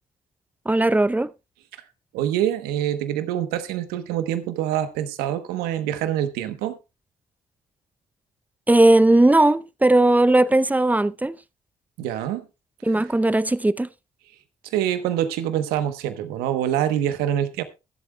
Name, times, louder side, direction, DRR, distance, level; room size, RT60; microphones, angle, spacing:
voice 1, 0.7-1.3 8.7-11.4 12.8-13.9, right 2 dB, 10° right, 0.6 m, -18 dB
voice 2, 2.1-6.8 12.0-12.5 14.6-17.6, right 11 dB, 85° right, 1.0 m, -25 dB
22.5 x 7.9 x 2.2 m
hypercardioid pair, 45°, 16 cm